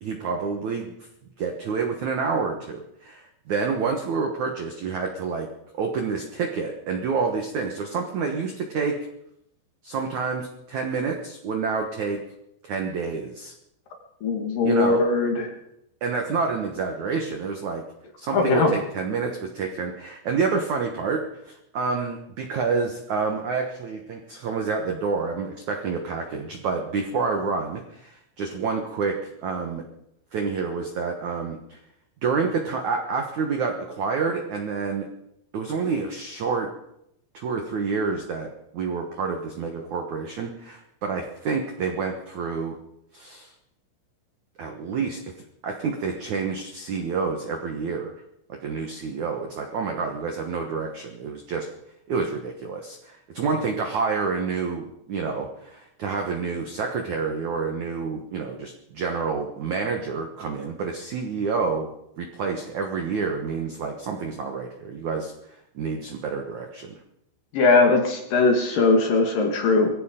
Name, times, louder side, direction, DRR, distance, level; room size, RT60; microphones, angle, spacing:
voice 1, 0.0-0.9 1.4-5.5 5.8-9.0 9.8-12.2 12.6-13.5 14.6-15.0 16.0-17.8 18.2-29.8 30.3-31.8 32.2-35.1 35.5-36.7 37.3-42.8 43.1-43.5 44.6-45.2 45.6-48.1 48.6-51.7 52.1-61.9 62.2-65.3 65.8-67.0, right 5 dB, 75° right, 2 dB, 1.7 m, -28 dB
voice 2, 14.2-15.5 18.3-18.7 67.5-69.9, left 3 dB, 55° left, 2 dB, 3.1 m, -20 dB
22.0 x 16.0 x 3.8 m, 0.78 s
omnidirectional pair, 5.6 m